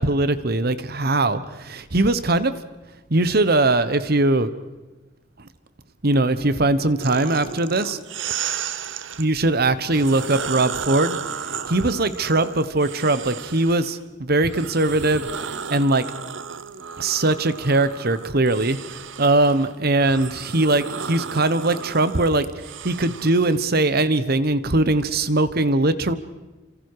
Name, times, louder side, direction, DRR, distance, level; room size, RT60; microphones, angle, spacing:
voice 1, 0.0-2.5 3.1-4.5 5.4-5.5 6.0-8.0 9.2-11.2 11.7-15.2 15.7-16.0 17.0-22.5 22.8-26.1, right 2 dB, 55° right, 13 dB, 1.2 m, -20 dB
sound 1, 7.0-9.3 9.9-13.9 14.4-23.6, right 7 dB, 80° right, 0.9 m, -34 dB
29.0 x 26.0 x 4.9 m, 1.1 s
head